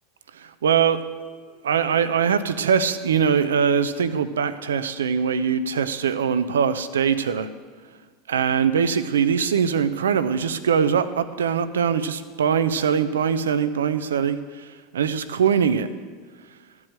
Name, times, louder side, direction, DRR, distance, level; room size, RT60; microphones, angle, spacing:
voice 1, 0.3-1.0 1.5-7.5 8.3-15.9, right 7 dB, 85° right, 12 dB, 0.6 m, -22 dB
13.0 x 4.8 x 8.8 m, 1.5 s
hypercardioid pair, 90°, 0 cm